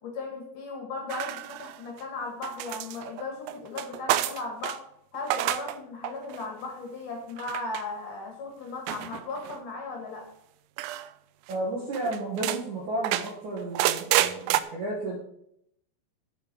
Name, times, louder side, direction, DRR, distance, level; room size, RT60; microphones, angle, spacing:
voice 1, 0.0-4.8 5.1-10.2, left 3 dB, 55° left, 0 dB, 2.8 m, -36 dB
sound 1, 1.1-2.0 2.4-4.8 5.2-5.8 6.0-6.4 7.4-7.8 8.9-9.6 10.8-11.1 11.5-11.6 11.9-12.6 13.0-14.6, right 14 dB, 85° right, 2.8 m, -29 dB
voice 2, 11.5-15.2, right 2 dB, 60° right, -2 dB, 2.2 m, -32 dB
8.7 x 7.5 x 6.1 m, 0.74 s
omnidirectional pair, 5.4 m